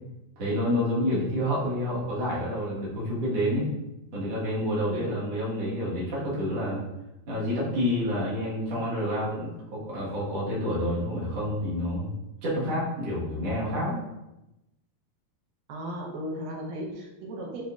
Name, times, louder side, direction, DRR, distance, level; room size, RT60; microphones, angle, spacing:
voice 1, 0.4-3.7 4.1-6.8 7.3-12.1 12.4-14.0, equal, 55° right, -8 dB, 2.1 m, -28 dB
voice 2, 15.7-17.6, right 1 dB, 75° right, -2 dB, 2.4 m, -35 dB
7.7 x 2.7 x 2.4 m, 0.94 s
omnidirectional pair, 4.2 m